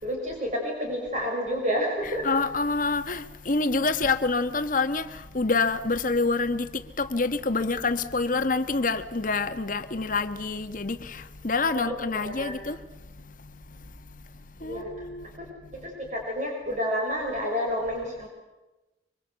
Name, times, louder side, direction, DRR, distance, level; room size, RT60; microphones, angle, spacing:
voice 1, 0.0-2.3 11.7-12.6 14.6-14.9 15.4-15.5 15.7-18.3, equal, 45° right, 5.7 m, -30 dB
voice 2, 2.0-5.1 5.3-6.7 7.0-11.0 11.4-12.8 14.6-15.2, left 3 dB, 50° left, 1.3 m, -26 dB
25.0 x 24.0 x 8.1 m
head